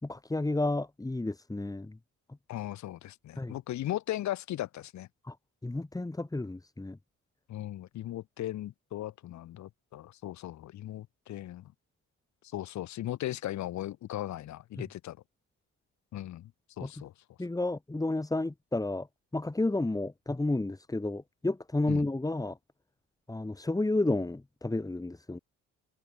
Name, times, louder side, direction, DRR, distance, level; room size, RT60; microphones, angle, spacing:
voice 1, 0.0-2.0 3.4-3.6 5.2-5.3 5.6-7.0 14.8-14.9 16.8-16.9 17.4-19.1 19.3-22.6 23.3-25.4, left 2 dB, 10° left, 1.8 m, -31 dB
voice 2, 2.5-5.1 7.5-11.7 12.5-15.2 16.1-16.5 16.8-17.1 21.9-22.1, left 13 dB, 70° left, 1.0 m, -37 dB
open air
cardioid pair, 90°, 30 cm